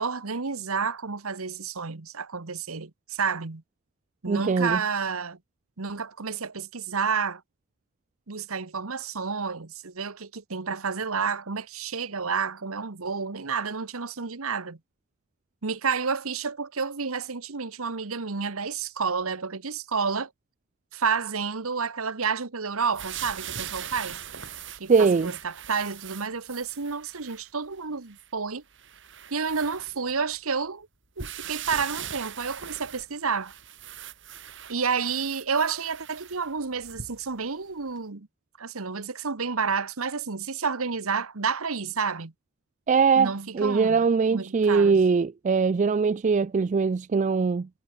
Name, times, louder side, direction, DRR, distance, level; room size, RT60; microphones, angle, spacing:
voice 1, 0.0-3.6 4.2-5.4 5.8-7.4 8.3-14.8 15.6-20.3 20.9-24.2 24.8-28.6 29.3-30.9 31.2-33.5 34.7-38.3 38.6-42.3 43.2-44.0 44.3-45.0, right 5 dB, 70° right, 1.2 m, -30 dB
voice 2, 4.3-4.8 24.9-25.3 42.9-47.7, right 5 dB, 35° right, 0.3 m, -22 dB
sound 1, 22.9-27.5 28.1-28.2 28.7-30.4 31.2-37.4 38.0-38.1, right 9 dB, 55° right, 6.7 m, -40 dB
head